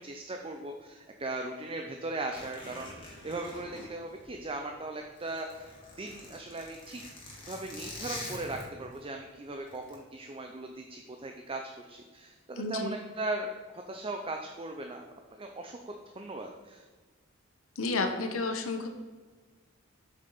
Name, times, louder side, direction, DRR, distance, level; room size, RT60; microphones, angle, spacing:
voice 1, 0.0-7.0 7.5-15.1 15.3-16.8, right 2 dB, 25° right, 3 dB, 0.6 m, -38 dB
Zipper (clothing), 2.3-4.7 5.0-9.0 9.7-10.0, left 2 dB, 25° left, 2.3 m, -45 dB
voice 2, 12.6-12.9 17.8-18.9, left 3 dB, 85° left, 6 dB, 0.9 m, -31 dB
8.0 x 6.4 x 4.1 m, 1.4 s
head